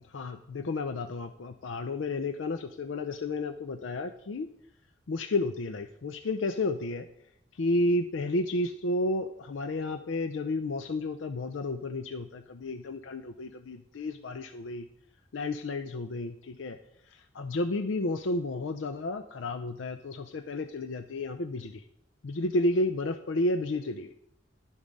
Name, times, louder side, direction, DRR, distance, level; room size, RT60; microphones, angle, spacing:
voice 1, 0.0-4.5 5.1-7.1 7.5-14.9 15.3-16.8 17.1-21.8 22.2-24.1, left 2 dB, 80° left, 9 dB, 0.5 m, -31 dB
11.0 x 7.2 x 5.3 m, 0.76 s
head